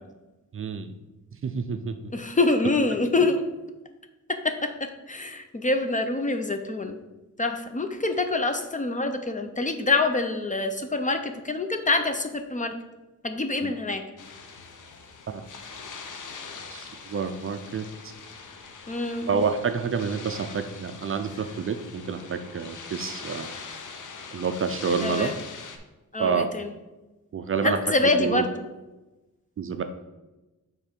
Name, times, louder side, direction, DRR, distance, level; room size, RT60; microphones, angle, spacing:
voice 1, 0.5-0.9 1.4-2.1 13.6-13.7 15.3-15.4 16.7-17.8 19.2-23.5 24.3-25.3 26.2-26.5 27.3-27.8 28.2-28.4 29.6-29.8, right 6 dB, 40° right, 8 dB, 0.4 m, -28 dB
voice 2, 2.1-3.4 4.3-7.0 7.4-12.7 13.2-14.0 18.9-19.3 25.0-25.3 26.1-26.7 27.6-28.5, left 3 dB, 25° left, 7 dB, 0.4 m, -26 dB
sound 1, 14.2-25.8, left 5 dB, 65° left, 0.8 m, -42 dB
5.6 x 3.7 x 5.9 m, 1.1 s
wide cardioid pair, 160°, 33 cm